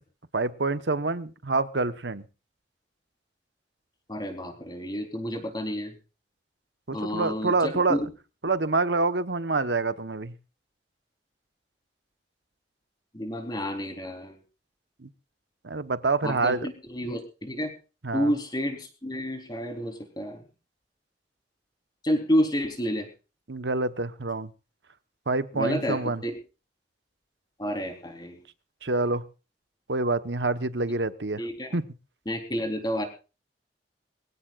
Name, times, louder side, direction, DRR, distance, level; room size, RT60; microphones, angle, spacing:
voice 1, 0.3-2.2 6.9-8.0 8.4-10.3 15.0-15.1 15.6-16.7 18.0-18.3 23.5-24.5 25.3-26.2 28.8-29.3 29.9-31.4 31.7-31.9, right 3 dB, 70° right, 1.1 m, -27 dB
voice 2, 4.1-5.9 6.9-8.1 13.1-14.4 16.2-17.7 18.1-20.4 22.0-23.1 25.5-26.4 27.6-28.4 31.4-31.8 32.3-33.0, equal, 25° left, 3.8 m, -30 dB
23.5 x 16.5 x 2.5 m
head